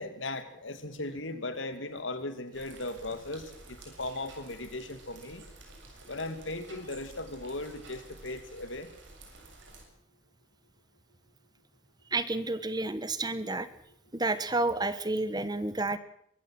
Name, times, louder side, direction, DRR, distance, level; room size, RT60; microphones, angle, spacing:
voice 1, 0.0-5.4 6.1-8.9, left 2 dB, 75° left, 10 dB, 2.7 m, -37 dB
sound 1, 2.5-9.8, right 2 dB, 70° right, 7.0 m, -51 dB
voice 2, 12.1-13.7 14.1-16.0, right 2 dB, 20° right, 14 dB, 1.2 m, -30 dB
23.5 x 15.0 x 7.7 m, 0.70 s
head